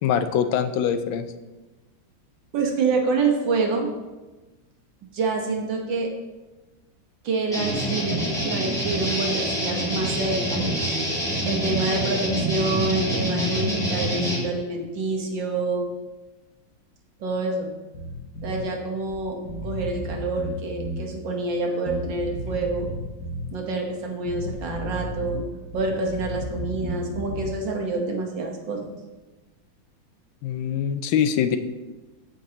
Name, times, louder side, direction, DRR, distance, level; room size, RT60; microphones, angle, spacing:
voice 1, 0.0-1.3 30.4-31.6, left 8 dB, 90° left, 9 dB, 1.4 m, -23 dB
voice 2, 2.5-3.9 5.1-6.1 7.2-10.9 11.5-15.9 17.2-17.7 18.4-22.9 23.5-25.4 25.7-28.9, right 3 dB, 70° right, 1 dB, 1.8 m, -27 dB
sound 1, 7.5-14.4, right 1 dB, ahead, 2.2 m, -26 dB
Bass guitar, 17.9-18.6 19.1-19.2 19.4-21.1 21.9-23.5 24.2-25.4 25.7-27.5, equal, 60° left, 2.4 m, -33 dB
14.5 x 5.1 x 2.9 m, 1.2 s
omnidirectional pair, 2.1 m